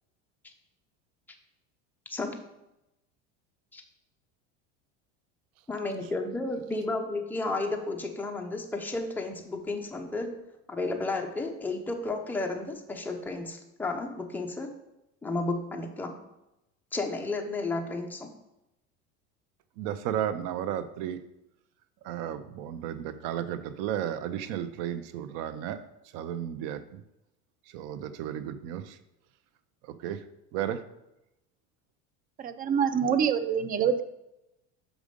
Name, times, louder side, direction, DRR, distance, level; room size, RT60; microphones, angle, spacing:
voice 1, 5.7-10.4 10.7-14.7 15.2-16.1 16.9-18.3, left 2 dB, 5° left, 2 dB, 0.8 m, -32 dB
voice 2, 19.8-21.2 22.0-25.8 26.1-27.0 27.7-29.0 29.8-30.2 30.5-30.8, right 10 dB, 60° right, 12 dB, 0.7 m, -33 dB
voice 3, 32.4-34.0, right 7 dB, 25° right, 12 dB, 0.4 m, -25 dB
6.2 x 5.1 x 5.2 m, 0.91 s
supercardioid pair, 125°, 35 cm